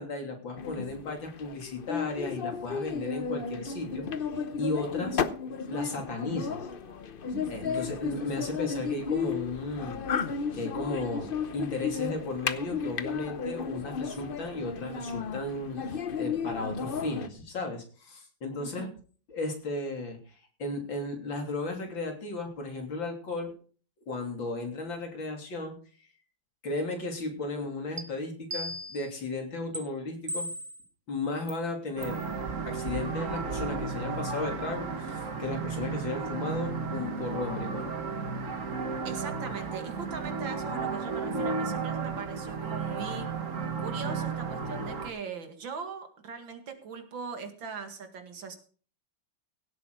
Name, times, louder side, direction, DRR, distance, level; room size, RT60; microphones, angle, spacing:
voice 1, 0.0-5.2 5.7-6.7 7.5-18.9 19.3-23.5 24.1-25.8 26.6-30.5 31.1-32.2 32.7-37.9, left 2 dB, 80° left, 3 dB, 3.9 m, -35 dB
sound 1, 0.6-17.3, left 6 dB, 50° left, 0.6 m, -34 dB
voice 2, 7.3-7.7 18.6-18.9 39.0-43.3 43.8-48.6, right 5 dB, 80° right, 6 dB, 2.8 m, -40 dB
sound 2, 28.0-28.1 28.5-29.1 29.7-29.8 30.3-30.8 31.5-31.6 32.0-32.2, equal, 20° right, 1.2 m, -36 dB
sound 3, 32.0-45.1, right 4 dB, 45° right, 1.8 m, -33 dB
17.0 x 8.5 x 4.9 m, 0.41 s
omnidirectional pair, 2.1 m